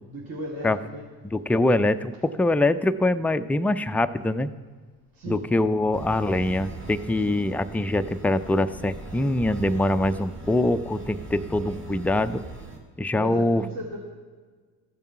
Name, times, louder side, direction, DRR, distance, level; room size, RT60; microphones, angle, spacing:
voice 1, 0.1-1.1 5.1-5.5 13.1-14.0, right 1 dB, 55° right, -3 dB, 2.3 m, -36 dB
voice 2, 1.3-4.5 5.3-12.4 13.0-13.6, left 1 dB, 5° left, 10 dB, 0.3 m, -23 dB
sound 1, 5.9-12.8, right 2 dB, 35° right, 3.1 m, -40 dB
14.0 x 7.1 x 5.7 m, 1.5 s
hypercardioid pair, 65°, 41 cm